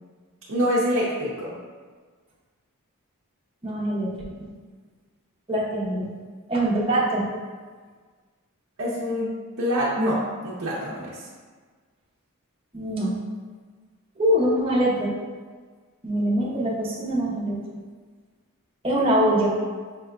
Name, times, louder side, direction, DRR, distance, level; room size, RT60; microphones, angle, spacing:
voice 1, 0.5-1.6 8.8-11.3, equal, 60° right, -8 dB, 0.8 m, -26 dB
voice 2, 3.6-4.1 4.4-4.5 5.5-6.1 6.5-7.3 12.7-13.2 14.2-15.1 16.0-17.6 18.8-19.6, right 1 dB, 25° right, -7 dB, 1.0 m, -23 dB
6.0 x 3.6 x 2.3 m, 1.5 s
head